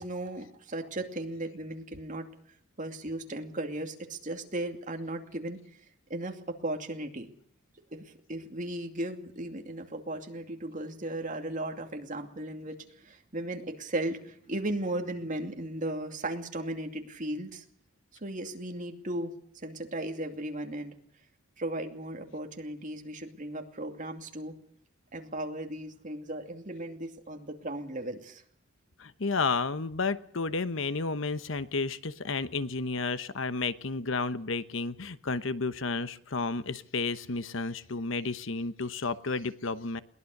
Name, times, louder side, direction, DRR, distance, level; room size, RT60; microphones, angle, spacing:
voice 1, 0.0-2.3 2.8-5.6 6.1-7.3 7.9-8.0 8.3-17.6 18.2-19.3 19.6-21.0 21.6-24.5 25.1-28.4, right 1 dB, 40° right, 4 dB, 2.6 m, -36 dB
voice 2, 29.0-40.0, left 4 dB, 65° left, 13 dB, 1.0 m, -32 dB
22.0 x 18.5 x 6.6 m, 0.63 s
head